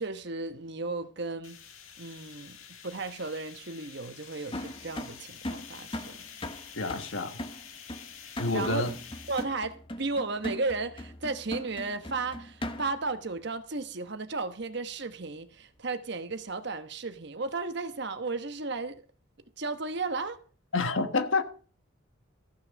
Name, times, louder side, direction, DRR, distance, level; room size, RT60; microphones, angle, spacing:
voice 1, 0.0-1.6 2.0-6.2 8.5-8.9 9.3-19.0 19.6-20.4, right 3 dB, 55° right, 1.1 m, -34 dB
sound 1, 1.4-9.4, left 8 dB, 90° left, 1.6 m, -48 dB
sound 2, 4.5-13.1, left 1 dB, 25° left, 1.1 m, -39 dB
voice 2, 6.8-7.4 8.4-8.9 20.7-21.4, left 3 dB, 70° left, 1.3 m, -28 dB
14.5 x 6.3 x 6.4 m
head